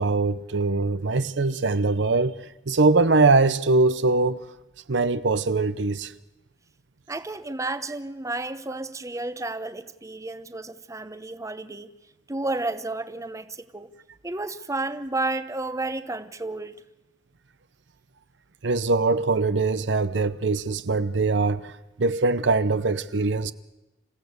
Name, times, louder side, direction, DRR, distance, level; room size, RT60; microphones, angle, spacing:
voice 1, 0.0-2.4 2.7-4.4 4.9-6.1 18.6-21.7 22.0-23.5, right 3 dB, 70° right, 0.7 m, -22 dB
voice 2, 7.1-11.9 12.3-13.9 14.2-16.7, right 2 dB, 15° right, 0.9 m, -31 dB
27.5 x 16.0 x 8.1 m
head